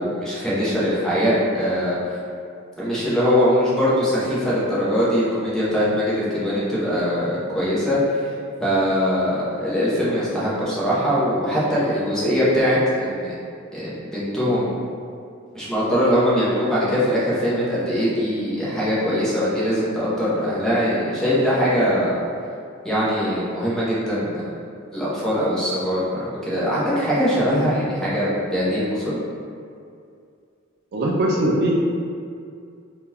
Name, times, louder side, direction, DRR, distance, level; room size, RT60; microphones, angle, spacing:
voice 1, 0.0-2.0 2.8-8.3 8.6-13.3 13.7-14.7 15.5-22.1 22.8-24.5 24.9-29.2, equal, 5° left, -9 dB, 0.7 m, -22 dB
voice 2, 30.9-31.8, right 1 dB, 50° right, -4 dB, 0.3 m, -20 dB
3.6 x 2.3 x 2.8 m, 2.4 s
head